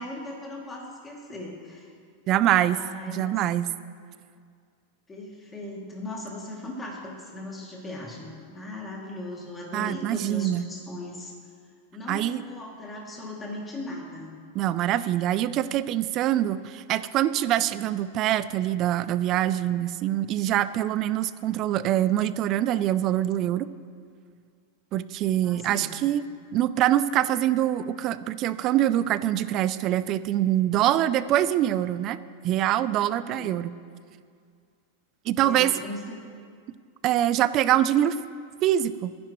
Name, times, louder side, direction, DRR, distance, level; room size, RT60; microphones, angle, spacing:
voice 1, 0.0-1.9 2.5-3.4 5.1-11.3 11.9-14.3 17.7-17.8 25.4-25.9 33.2-33.6 35.4-36.2, left 1 dB, 15° left, -3 dB, 2.5 m, -38 dB
voice 2, 2.3-2.8 3.1-3.7 9.7-10.7 12.1-12.4 14.5-23.7 24.9-26.3 26.5-32.2 32.4-33.8 35.3-35.8 37.0-38.2 38.6-39.2, right 12 dB, 35° right, 15 dB, 0.4 m, -24 dB
23.0 x 10.5 x 3.1 m, 2.1 s
supercardioid pair, 150°, 0 cm